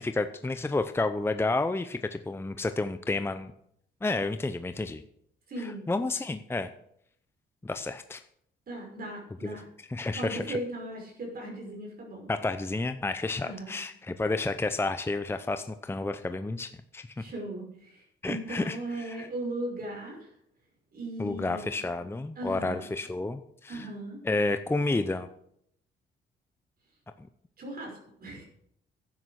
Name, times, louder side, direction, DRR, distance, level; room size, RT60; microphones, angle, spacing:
voice 1, 0.0-3.5 4.0-5.0 5.6-6.7 7.6-8.2 9.4-9.6 9.9-10.6 12.3-17.2 18.2-19.3 21.2-23.9 24.2-25.3 27.2-27.3, left 2 dB, 10° left, 9 dB, 0.7 m, -30 dB
voice 2, 5.5-5.9 8.7-9.7 10.1-12.3 13.4-13.8 17.2-20.3 20.9-21.6 22.4-22.9 23.7-24.2 27.6-28.4, right 1 dB, 50° right, 0 dB, 5.5 m, -38 dB
11.5 x 8.9 x 6.4 m, 0.72 s
cardioid pair, 90°, 20 cm